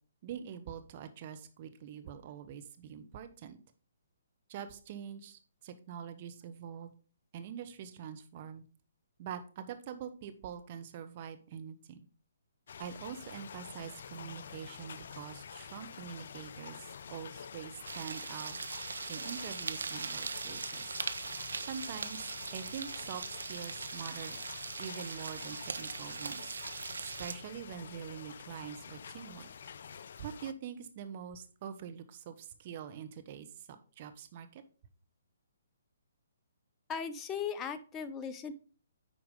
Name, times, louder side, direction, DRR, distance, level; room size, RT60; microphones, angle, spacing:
voice 1, 0.2-3.6 4.5-6.9 7.3-8.6 9.2-12.0 12.8-18.6 19.1-20.9 21.7-24.4 24.8-26.6 27.0-29.5 30.2-33.7 34.0-34.6, right 8 dB, 40° right, 9 dB, 1.0 m, -44 dB
sound 1, 12.7-30.5, left 7 dB, 60° left, 0.4 m, -48 dB
sound 2, 17.8-27.4, right 4 dB, 75° right, 0.7 m, -40 dB
voice 2, 36.9-38.5, left 7 dB, 20° left, 11 dB, 0.7 m, -37 dB
9.2 x 4.8 x 3.8 m, 0.38 s
figure-of-eight pair, 135°, 0 cm